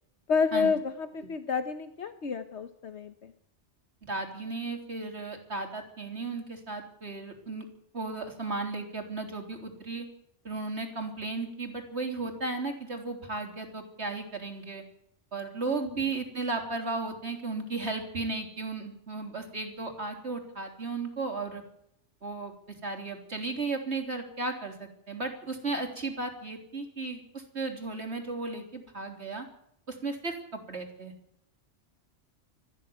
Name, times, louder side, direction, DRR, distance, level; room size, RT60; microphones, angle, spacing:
voice 1, 0.3-3.3 15.7-15.9, left 5 dB, 70° left, 9 dB, 1.4 m, -29 dB
voice 2, 4.0-7.7 7.9-10.1 10.4-14.8 15.3-21.6 22.2-29.5 29.9-31.1, right 3 dB, 65° right, 3 dB, 4.1 m, -35 dB
20.0 x 14.5 x 9.5 m, 0.74 s
omnidirectional pair, 1.2 m